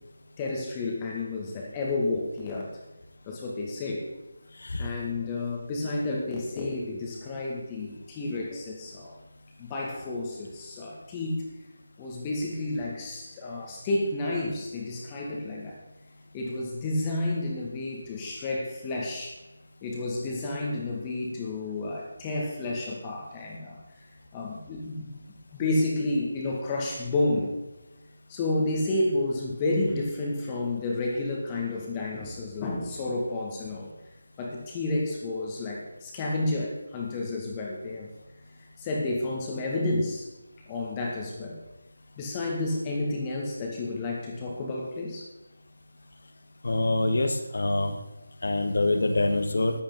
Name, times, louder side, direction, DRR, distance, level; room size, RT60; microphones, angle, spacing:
voice 1, 0.4-2.8 3.3-4.0 4.8-9.2 9.6-11.4 12.0-15.8 16.3-19.4 19.8-23.8 24.3-25.1 25.5-27.5 28.3-33.9 34.4-38.1 38.8-40.3 40.7-41.6 42.2-45.3, left 2 dB, 20° left, -2 dB, 2.2 m, -30 dB
voice 2, 46.6-47.3 47.5-47.9 48.4-49.7, left 2 dB, 55° left, 6 dB, 1.8 m, -24 dB
14.0 x 11.5 x 4.0 m, 1.0 s
figure-of-eight pair, 155°, 0 cm